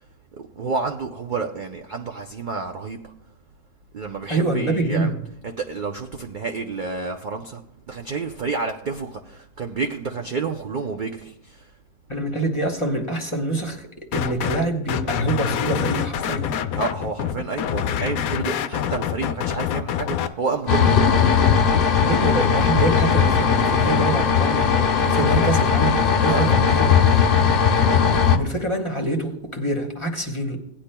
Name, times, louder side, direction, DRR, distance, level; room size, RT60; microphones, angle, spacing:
voice 1, 0.4-3.0 3.9-5.1 5.4-7.6 7.9-11.6 16.8-21.1 26.2-26.5, right 4 dB, 55° right, 3 dB, 0.5 m, -29 dB
voice 2, 4.3-5.2 12.1-16.5 22.0-27.0 28.3-30.6, right 2 dB, 25° left, 1 dB, 1.1 m, -25 dB
sound 1, 14.1-14.6 14.9-20.3, left 9 dB, 75° left, 1.0 m, -26 dB
sound 2, 20.7-28.4, left 6 dB, 50° left, 0.7 m, -18 dB
17.0 x 10.0 x 2.2 m, 0.76 s
omnidirectional pair, 1.5 m